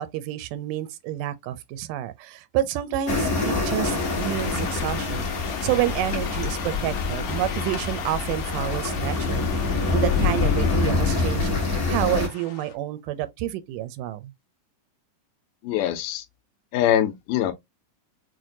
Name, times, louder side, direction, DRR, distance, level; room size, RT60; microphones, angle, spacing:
voice 1, 0.0-5.3 5.6-9.6 9.9-11.5 11.9-14.3, right 13 dB, 90° right, 2.1 m, -29 dB
sound 1, 3.1-12.3, left 3 dB, 50° left, 0.8 m, -25 dB
sound 2, 3.8-12.7, left 8 dB, 70° left, 2.0 m, -36 dB
voice 2, 15.6-16.2 16.7-17.5, left 11 dB, 85° left, 2.2 m, -23 dB
6.2 x 2.1 x 2.6 m
omnidirectional pair, 3.7 m